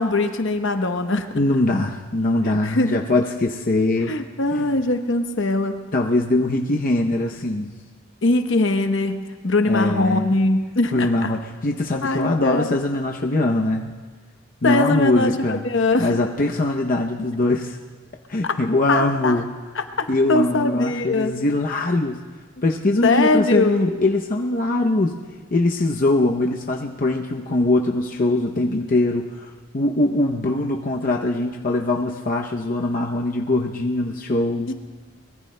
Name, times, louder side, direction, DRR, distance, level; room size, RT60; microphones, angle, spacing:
voice 1, 0.0-1.4 2.4-3.0 4.1-5.9 8.2-11.1 12.0-12.8 14.6-16.1 18.4-18.5 18.9-19.4 19.7-21.3 23.0-23.9 34.6-34.7, left 2 dB, 65° left, 7 dB, 0.9 m, -21 dB
voice 2, 1.3-4.1 4.6-4.8 5.9-7.7 9.6-10.4 10.9-13.9 14.6-15.6 16.0-17.8 18.3-19.5 20.1-22.2 22.6-25.2 25.5-34.7, left 2 dB, 40° left, 1 dB, 0.7 m, -22 dB
24.0 x 21.5 x 2.2 m, 1.4 s
head